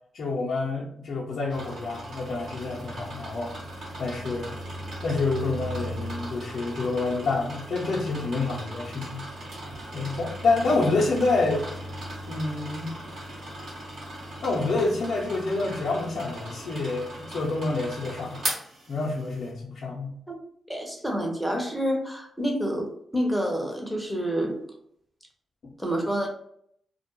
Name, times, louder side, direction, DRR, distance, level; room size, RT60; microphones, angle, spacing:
voice 1, 0.1-3.5 4.0-4.5 5.0-9.2 9.9-11.6 12.3-12.9 14.4-18.4 18.9-20.1 25.6-25.7, left 3 dB, 60° left, -5 dB, 0.5 m, -27 dB
sound 1, 1.5-19.5, right 1 dB, 65° right, 0.9 m, -38 dB
voice 2, 20.7-24.6 25.8-26.3, equal, ahead, 1 dB, 0.6 m, -28 dB
2.2 x 2.0 x 2.9 m, 0.68 s
cardioid pair, 90°, 0 cm